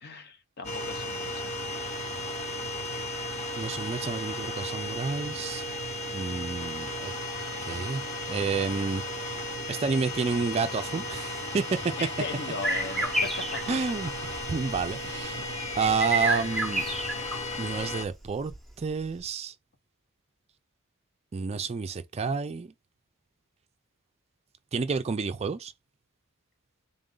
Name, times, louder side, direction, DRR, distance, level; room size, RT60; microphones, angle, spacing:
voice 1, 0.0-1.5 12.0-13.6, left 3 dB, 50° left, 0.7 m, -38 dB
sound 1, 0.6-18.0, left 1 dB, 30° left, 1.0 m, -35 dB
voice 2, 3.6-5.6 6.1-7.1 7.6-8.0 8.3-9.0 9.7-11.9 13.7-15.4 15.8-16.8 17.6-19.5 21.3-22.7 24.7-25.7, right 4 dB, 30° right, 0.3 m, -30 dB
sound 2, 12.6-17.5 17.8-18.8, right 1 dB, ahead, 0.7 m, -30 dB
3.6 x 2.5 x 3.7 m
head